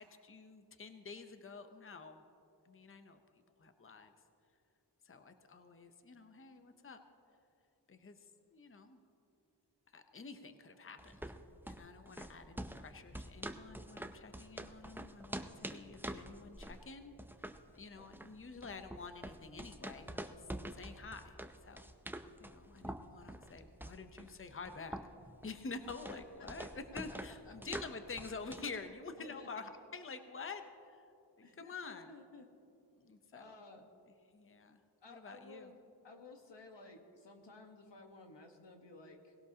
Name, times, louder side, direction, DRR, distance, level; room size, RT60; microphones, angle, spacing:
voice 1, 0.0-2.2 2.6-3.2 3.6-4.1 5.0-7.0 7.9-9.0 9.9-11.2 11.7-17.1 17.7-21.9 22.4-25.0 25.4-31.1 31.6-32.1 32.9-33.6 34.3-34.8 35.1-35.7, left 4 dB, 30° left, 8 dB, 0.7 m, -49 dB
sound 1, 11.0-28.8, right 1 dB, 5° right, 0.5 m, -47 dB
voice 2, 26.0-26.5 27.4-27.5 29.2-29.5 31.4-32.5 33.3-33.8 35.0-35.8 36.0-39.4, left 3 dB, 90° left, 4 dB, 1.3 m, -55 dB
19.0 x 17.0 x 2.8 m, 2.6 s
wide cardioid pair, 90°, 42 cm